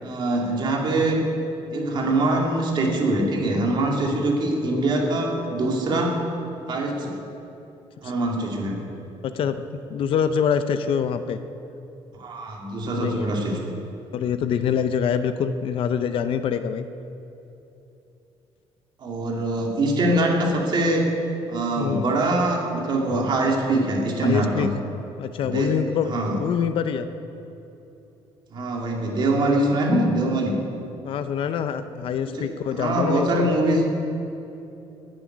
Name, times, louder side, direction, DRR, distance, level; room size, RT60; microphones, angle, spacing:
voice 1, 0.0-1.2 1.7-6.2 6.7-7.2 8.0-8.8 12.2-13.8 19.0-21.1 21.5-24.7 25.4-25.8 26.1-26.4 28.5-30.5 32.3-33.9, right 1 dB, 45° right, 0 dB, 2.5 m, -23 dB
voice 2, 9.2-9.6 9.9-11.4 12.9-13.3 14.1-16.9 21.8-22.1 24.2-24.7 25.2-26.1 26.4-27.1 31.0-33.5, left 7 dB, 55° left, 10 dB, 0.6 m, -25 dB
10.5 x 9.4 x 9.8 m, 2.9 s
cardioid pair, 140°, 11 cm